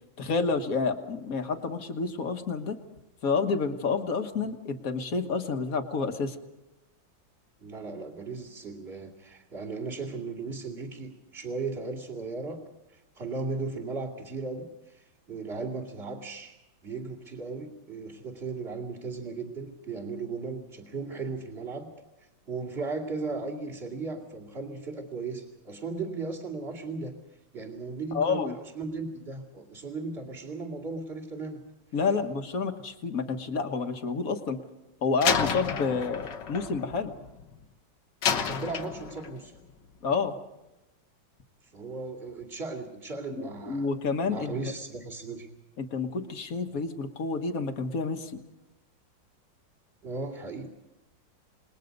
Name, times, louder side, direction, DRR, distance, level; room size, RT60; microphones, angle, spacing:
voice 1, 0.2-2.8 3.2-6.4 28.1-28.6 31.9-34.6 35.0-37.1 40.0-40.4 43.3-44.7 45.8-48.3, left 4 dB, 50° left, 6 dB, 1.8 m, -29 dB
voice 2, 7.6-12.6 12.9-16.5 16.8-21.9 22.5-27.2 27.5-31.6 32.0-32.1 36.2-36.3 38.3-39.5 41.7-43.9 44.2-45.5 50.0-50.7, right 3 dB, 30° right, 1 dB, 2.8 m, -36 dB
Slam, 35.2-37.6 38.2-39.5, left 6 dB, 65° left, 1.8 m, -30 dB
28.0 x 21.0 x 5.3 m, 0.98 s
omnidirectional pair, 2.1 m